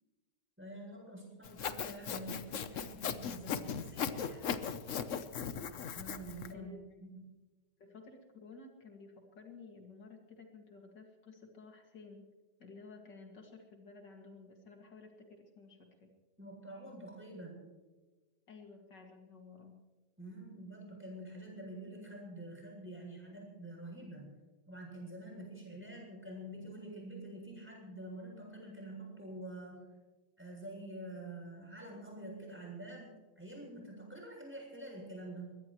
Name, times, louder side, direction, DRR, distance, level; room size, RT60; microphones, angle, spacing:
voice 1, 0.6-4.6 5.9-6.7 7.0-7.3 16.4-17.6 20.2-24.3 24.7-29.8 30.4-35.6, right 1 dB, 5° right, -1 dB, 7.6 m, -47 dB
Sawing, 1.4-6.5, left 7 dB, 55° left, 1.1 m, -38 dB
voice 2, 7.8-12.2 12.6-16.1 18.5-19.8, left 4 dB, 75° left, 2 dB, 2.8 m, -54 dB
22.5 x 21.0 x 3.1 m, 1.2 s
omnidirectional pair, 1.9 m